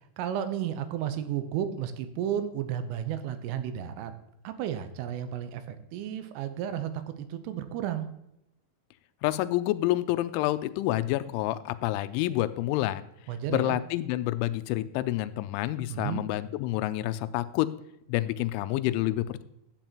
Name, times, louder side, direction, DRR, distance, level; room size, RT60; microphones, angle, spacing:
voice 1, 0.2-4.1 4.4-8.1 13.3-13.8 15.9-16.2, right 10 dB, 90° right, 9 dB, 3.3 m, -33 dB
voice 2, 9.2-13.0 13.5-17.8 18.1-19.4, left 15 dB, 85° left, 11 dB, 2.8 m, -28 dB
11.5 x 8.8 x 3.0 m, 0.80 s
omnidirectional pair, 5.8 m